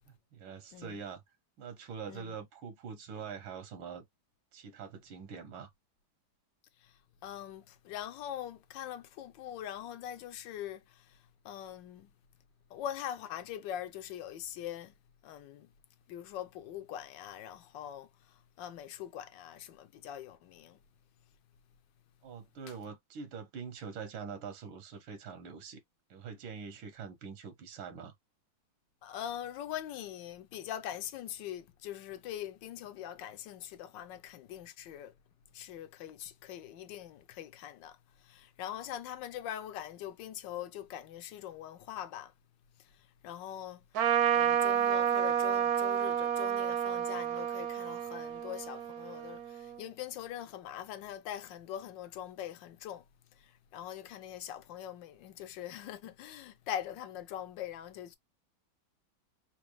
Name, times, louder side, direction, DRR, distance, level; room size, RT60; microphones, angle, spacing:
voice 1, 0.3-1.2 1.6-4.1 4.5-5.7 22.2-25.8 26.1-28.1, right 6 dB, 85° right, 1.7 m, -44 dB
voice 2, 6.8-12.1 12.7-14.9 15.2-15.7 16.1-20.8 29.0-35.1 35.5-42.3 42.8-44.1 44.3-53.1 53.3-58.2, left 11 dB, 70° left, 1.4 m, -43 dB
Trumpet, 43.9-49.8, right 9 dB, 65° right, 1.0 m, -30 dB
4.0 x 2.6 x 3.1 m
omnidirectional pair, 2.2 m